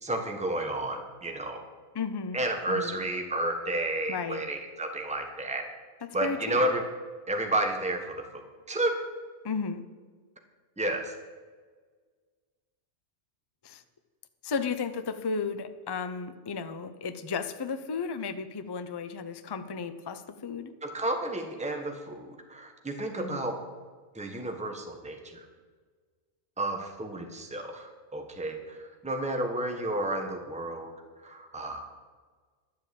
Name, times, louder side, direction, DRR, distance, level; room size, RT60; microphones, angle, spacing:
voice 1, 0.0-1.6 2.3-5.7 6.1-6.8 7.3-8.4 8.7-8.9 10.8-11.1 20.8-23.6 24.1-25.4 26.6-30.9 31.2-32.0, right 1 dB, 5° right, 3 dB, 1.3 m, -31 dB
voice 2, 1.9-2.4 2.7-3.0 4.1-4.4 6.0-6.6 9.4-9.8 13.6-13.8 14.4-20.7 23.2-23.5, left 5 dB, 30° left, 10 dB, 0.5 m, -34 dB
12.0 x 7.7 x 8.5 m, 1.5 s
omnidirectional pair, 1.2 m